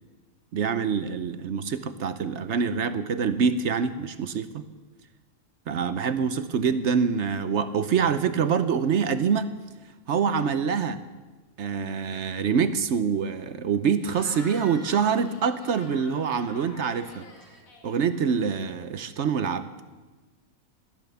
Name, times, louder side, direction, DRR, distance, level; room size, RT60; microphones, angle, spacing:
voice 1, 0.5-4.6 5.7-9.5 10.1-11.0 11.6-17.3 17.8-19.7, right 6 dB, 60° right, 11 dB, 1.0 m, -25 dB
Cheering / Crowd, 14.0-18.6, left 3 dB, 70° left, 2.1 m, -46 dB
15.0 x 11.5 x 6.9 m, 1.3 s
omnidirectional pair, 1.5 m